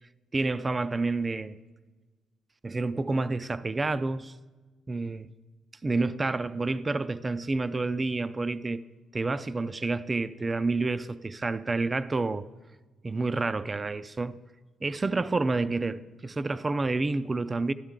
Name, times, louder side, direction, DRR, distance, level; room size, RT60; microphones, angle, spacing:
voice 1, 0.3-1.6 2.6-4.3 4.9-5.3 5.8-8.9 9.1-12.5 13.0-14.4 14.8-17.7, right 3 dB, 25° right, 0.4 m, -29 dB
12.0 x 11.5 x 3.7 m
cardioid pair, 90°, 0 cm